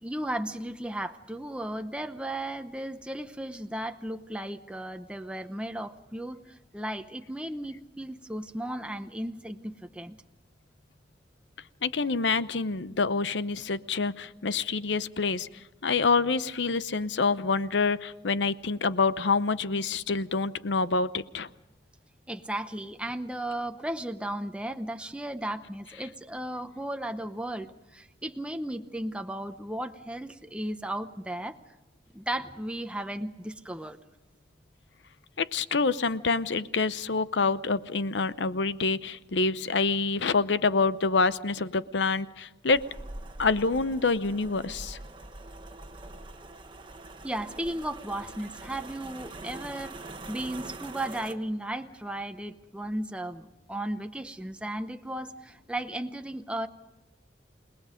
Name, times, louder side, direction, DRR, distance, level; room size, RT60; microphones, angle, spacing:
voice 1, 0.0-10.2 22.3-31.6 32.1-34.0 47.2-50.0 50.3-56.7, right 1 dB, 5° right, 7 dB, 0.8 m, -35 dB
voice 2, 11.8-15.5 15.8-21.5 35.4-42.8 43.4-45.0, left 4 dB, 75° left, 14 dB, 0.8 m, -27 dB
sound 1, 42.7-51.3, right 2 dB, 25° right, 1.2 m, -43 dB
29.0 x 19.5 x 5.1 m, 1.0 s
head